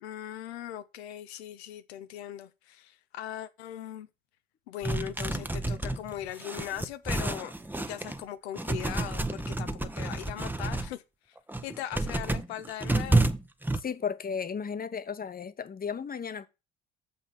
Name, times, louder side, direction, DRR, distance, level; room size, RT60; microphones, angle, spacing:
voice 1, 0.0-4.1 4.7-11.0 11.3-11.4 11.6-13.3, left 11 dB, 80° left, 0.7 m, -39 dB
sound 1, 4.8-8.2 8.6-10.9 11.4-13.8, right 2 dB, 5° right, 0.8 m, -30 dB
voice 2, 13.7-16.5, left 6 dB, 30° left, 1.0 m, -34 dB
7.1 x 5.7 x 6.4 m
hypercardioid pair, 60°, 32 cm